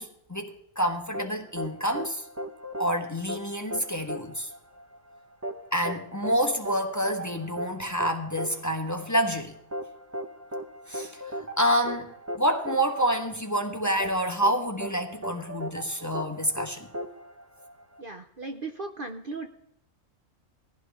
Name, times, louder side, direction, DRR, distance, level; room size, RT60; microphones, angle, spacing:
voice 1, 0.0-2.2 2.8-4.5 5.7-9.5 10.9-11.1 11.6-16.9, equal, 15° left, 4 dB, 1.2 m, -28 dB
sound 1, 1.1-18.0, equal, 15° right, 1.0 m, -37 dB
voice 2, 18.0-19.5, right 3 dB, 45° right, 5 dB, 0.9 m, -37 dB
19.5 x 15.0 x 3.6 m, 0.71 s
omnidirectional pair, 1.4 m